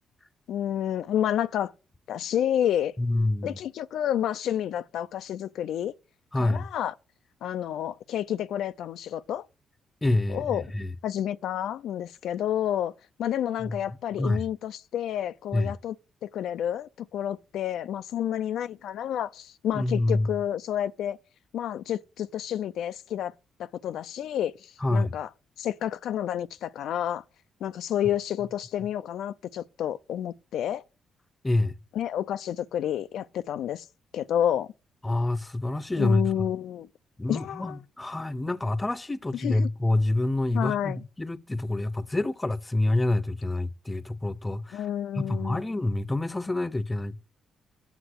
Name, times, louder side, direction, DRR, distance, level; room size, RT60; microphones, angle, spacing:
voice 1, 0.5-1.7 2.1-2.9 3.4-5.9 6.4-6.9 7.4-9.5 10.3-10.6 11.0-12.9 13.2-16.0 16.2-21.2 21.5-23.3 23.6-25.3 25.6-27.2 27.6-30.8 31.9-33.9 34.1-34.7 36.0-36.9 37.3-37.8 39.3-39.7 40.5-41.0 44.7-45.6, left 10 dB, 75° left, 0.4 m, -30 dB
voice 2, 3.0-3.6 6.3-6.7 10.0-10.9 13.6-13.8 14.2-14.4 15.5-15.7 19.7-20.3 24.8-25.1 31.4-31.7 35.0-36.5 37.2-44.9 45.1-47.3, left 2 dB, 15° left, 0.7 m, -27 dB
8.1 x 7.5 x 7.8 m
cardioid pair, 90°, 0 cm